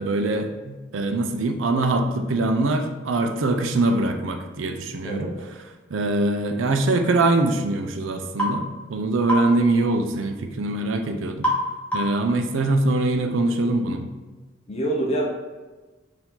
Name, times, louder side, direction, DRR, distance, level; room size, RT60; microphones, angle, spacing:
voice 1, 0.0-5.3 5.9-11.5 11.9-14.1, right 2 dB, 85° right, 5 dB, 0.5 m, -23 dB
voice 2, 5.0-5.5 14.7-15.3, right 1 dB, 30° left, 0 dB, 0.5 m, -26 dB
sound 1, 8.4-8.6 9.3-9.5 11.4-11.7 11.9-12.2, left 1 dB, 5° left, 0.9 m, -23 dB
4.6 x 2.7 x 3.7 m, 1.2 s
head